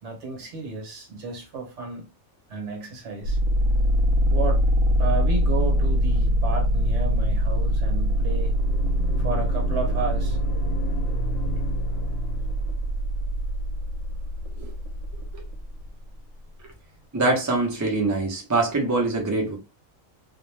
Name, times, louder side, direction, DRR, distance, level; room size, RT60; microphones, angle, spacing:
voice 1, 0.0-2.0 2.5-3.4 4.2-4.7 5.0-8.5 9.2-10.4, right 4 dB, 60° right, 1.1 m, -32 dB
sound 1, 3.2-15.9, equal, 85° right, 1.0 m, -23 dB
sound 2, 7.9-12.9, left 3 dB, 90° left, 1.1 m, -37 dB
voice 2, 17.1-19.5, right 2 dB, 25° right, 0.4 m, -23 dB
2.5 x 2.1 x 3.1 m
omnidirectional pair, 1.4 m